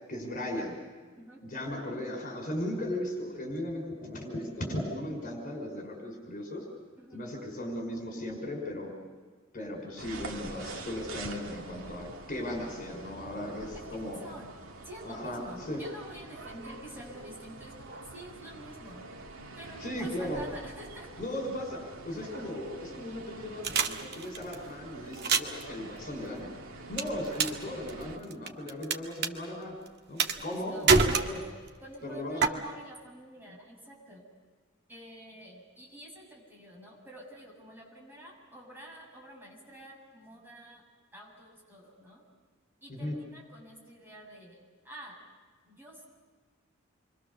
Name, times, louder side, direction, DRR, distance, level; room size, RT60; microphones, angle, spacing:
voice 1, 0.1-0.8 1.4-6.6 7.1-8.9 9.5-14.2 15.0-15.8 19.8-20.4 21.2-26.5 26.9-29.8 30.1-31.4 32.0-32.6 42.9-43.2, left 1 dB, 40° left, 2 dB, 5.4 m, -37 dB
sound 1, 10.0-28.2, right 2 dB, 75° right, 2.1 m, -46 dB
voice 2, 14.2-14.5 14.8-19.1 19.6-21.2 22.1-22.4 30.5-30.9 31.8-34.2 34.9-40.8 41.1-42.2 42.8-44.6 44.8-45.2 45.6-46.1, right 1 dB, 10° right, -2 dB, 7.4 m, -48 dB
sound 2, 23.6-24.5 25.1-25.6 27.0-27.6 27.9-28.9 29.2-29.3 30.2-30.6 30.9-31.7 32.4-32.5, right 5 dB, 55° right, 1.7 m, -25 dB
28.5 x 24.0 x 6.9 m, 1.5 s
head